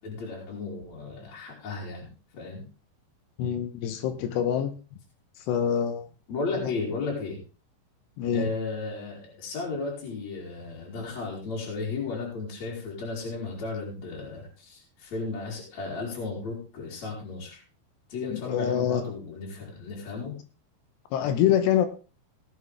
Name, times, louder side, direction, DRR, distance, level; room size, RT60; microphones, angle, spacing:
voice 1, 0.0-2.1 2.3-2.6 6.3-7.4 8.3-17.6 18.1-20.3, left 4 dB, 35° left, -3 dB, 5.0 m, -34 dB
voice 2, 3.4-4.8 5.4-6.1 6.5-6.7 8.2-8.5 18.3-19.0 21.1-21.9, left 9 dB, 75° left, 9 dB, 2.8 m, -25 dB
18.0 x 8.8 x 3.5 m, 0.34 s
omnidirectional pair, 5.5 m